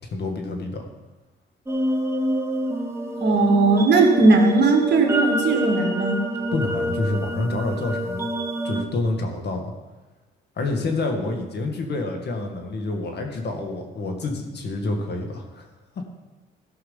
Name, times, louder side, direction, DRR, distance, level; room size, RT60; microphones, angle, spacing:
voice 1, 0.0-0.8 6.5-8.3 8.6-9.7 10.6-15.7, left 2 dB, 55° left, 3 dB, 1.9 m, -28 dB
sound 1, 1.7-8.8, equal, 10° right, 1.1 m, -27 dB
voice 2, 3.2-6.2, right 3 dB, 60° right, 2 dB, 2.1 m, -18 dB
14.0 x 5.8 x 5.6 m, 1.2 s
cardioid pair, 90°, 20 cm